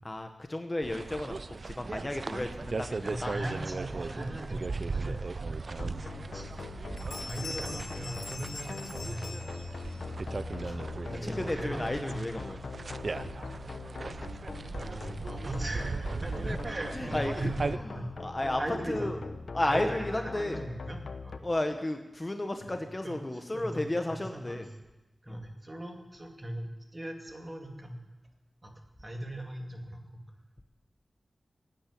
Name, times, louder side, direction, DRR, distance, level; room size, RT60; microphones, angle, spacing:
voice 1, 0.0-1.4 1.6-3.3 10.6-10.8 11.2-12.6 16.4-16.6 16.9-17.5 17.8-18.6 18.9-19.2 19.5-20.6 21.4-24.7 25.3-25.4, left 1 dB, 25° left, 5 dB, 1.0 m, -33 dB
saqqara outside, 0.8-17.8, right 3 dB, 50° right, 0.5 m, -37 dB
voice 2, 3.0-5.4 6.2-6.5 7.2-9.3 10.4-10.8 11.1-12.2 14.5-18.1 18.6-19.2 19.6-21.4 22.7-24.7 25.2-28.0 28.6-28.7 29.0-30.2, right 1 dB, 25° right, 2 dB, 2.4 m, -39 dB
sound 1, 5.8-21.4, left 4 dB, 70° left, 0.9 m, -42 dB
Bell, 6.6-6.7 7.0-10.1, left 3 dB, 90° left, 2.2 m, -43 dB
16.0 x 9.0 x 8.5 m, 1.0 s
wide cardioid pair, 100°, 0 cm